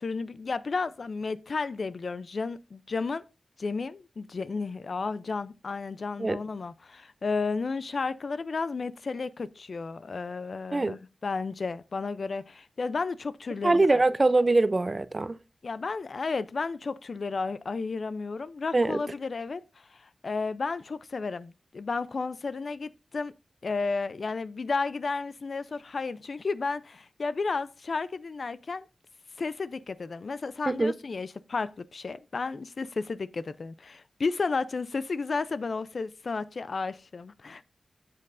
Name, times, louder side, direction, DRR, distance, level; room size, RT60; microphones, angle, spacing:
voice 1, 0.0-3.2 3.6-14.0 15.6-19.6 20.2-23.3 23.6-28.9 29.4-37.6, left 4 dB, 60° left, 0.4 m, -32 dB
voice 2, 13.6-15.4 18.7-19.0 30.7-30.9, right 2 dB, 30° right, 0.4 m, -23 dB
9.5 x 7.6 x 2.5 m
wide cardioid pair, 100°, 0 cm